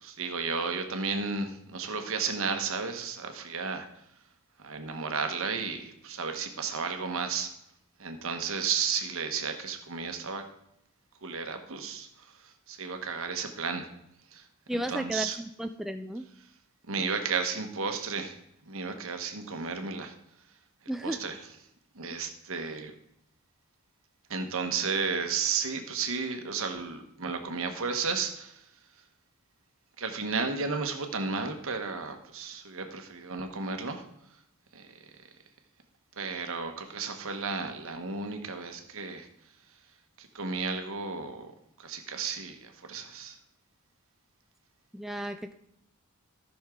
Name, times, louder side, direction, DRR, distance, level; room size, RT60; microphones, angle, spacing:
voice 1, 0.0-3.9 4.6-7.5 8.0-10.5 11.2-12.1 12.7-13.9 14.3-14.4 14.7-15.4 16.9-18.4 18.7-20.1 21.0-21.4 22.0-22.9 24.3-28.5 30.0-34.0 34.7-34.8 36.2-39.3 40.2-41.5 41.8-43.3, right 5 dB, 70° right, 6 dB, 1.2 m, -33 dB
voice 2, 14.7-16.3 20.9-21.2 44.9-45.5, right 1 dB, ahead, 6 dB, 0.4 m, -34 dB
14.0 x 6.3 x 3.7 m, 0.76 s
head